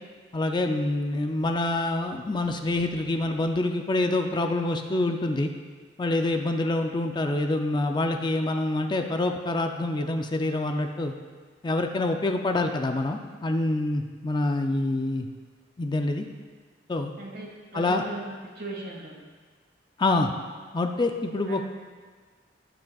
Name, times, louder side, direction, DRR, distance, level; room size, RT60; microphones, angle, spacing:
voice 1, 0.3-5.5 6.0-11.1 11.6-15.3 15.8-16.3 16.9-17.1 17.7-18.0 20.0-20.3 20.7-21.6, left 2 dB, 25° left, 5 dB, 0.4 m, -26 dB
voice 2, 17.2-19.1 21.5-21.6, right 1 dB, 55° right, -2 dB, 1.9 m, -38 dB
16.5 x 6.0 x 2.4 m, 1.5 s
head